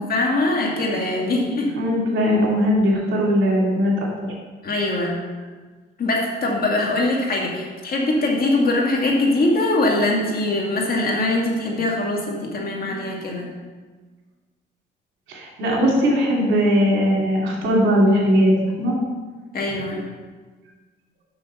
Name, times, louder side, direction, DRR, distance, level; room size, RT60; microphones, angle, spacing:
voice 1, 0.1-1.7 4.6-5.2 6.0-13.5 19.5-20.1, left 2 dB, 50° left, -1 dB, 2.0 m, -22 dB
voice 2, 1.7-3.9 4.2-4.3 15.3-18.5 18.8-19.0, equal, 80° right, -2 dB, 2.6 m, -19 dB
6.4 x 6.4 x 5.6 m, 1.4 s
cardioid pair, 90°, 20 cm